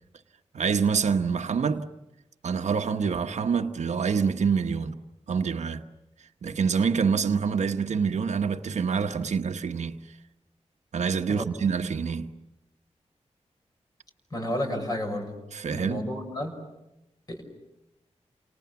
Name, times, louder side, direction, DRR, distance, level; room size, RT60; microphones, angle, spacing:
voice 1, 0.5-1.9 2.4-5.0 5.3-5.8 6.4-10.0 10.9-12.3 15.5-16.1, right 6 dB, 85° right, 1.1 m, -26 dB
voice 2, 14.3-15.3 15.7-16.6 17.3-17.4, left 1 dB, 35° left, 6.1 m, -31 dB
29.5 x 28.5 x 7.0 m
wide cardioid pair, 180°, 12 cm